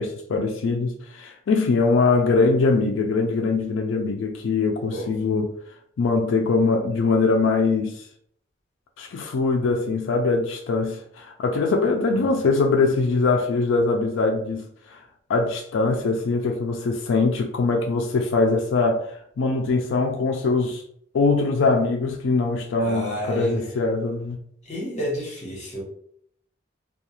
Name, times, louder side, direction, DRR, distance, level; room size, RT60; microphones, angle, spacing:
voice 1, 0.0-5.5 6.0-8.1 9.0-15.0 15.3-20.8 21.1-24.4, left 3 dB, 90° left, 3 dB, 0.4 m, -22 dB
voice 2, 22.8-23.6 24.7-25.8, equal, 40° left, -3 dB, 1.0 m, -30 dB
2.3 x 2.3 x 2.9 m, 0.65 s
head